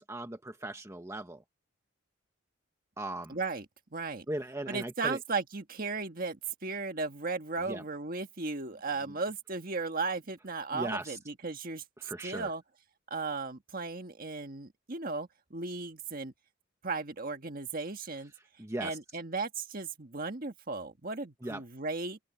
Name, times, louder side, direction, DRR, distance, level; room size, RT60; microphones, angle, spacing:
voice 1, 0.0-1.4 3.0-3.4 4.3-5.2 7.7-7.8 10.7-11.2 12.0-12.5 18.6-19.0 21.4-21.6, right 1 dB, 15° right, 1.1 m, -38 dB
voice 2, 3.3-3.6 3.9-4.2 4.7-12.6 13.1-16.3 16.8-18.3 18.8-22.2, right 3 dB, 45° right, 1.6 m, -36 dB
open air
head